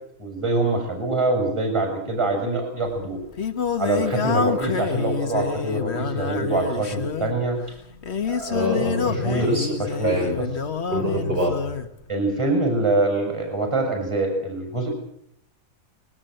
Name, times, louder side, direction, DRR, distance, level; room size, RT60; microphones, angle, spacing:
voice 1, 0.2-3.2 3.8-7.6 8.3-8.6 9.1-9.5 9.8-10.5 12.1-14.9, right 2 dB, 20° right, 3 dB, 6.6 m, -24 dB
Singing, 2.9-11.9, left 6 dB, 55° left, 1.7 m, -27 dB
voice 2, 8.5-9.8 10.0-10.3 10.9-11.5, equal, 45° right, -1 dB, 6.1 m, -25 dB
21.5 x 19.0 x 7.9 m, 0.72 s
omnidirectional pair, 1.4 m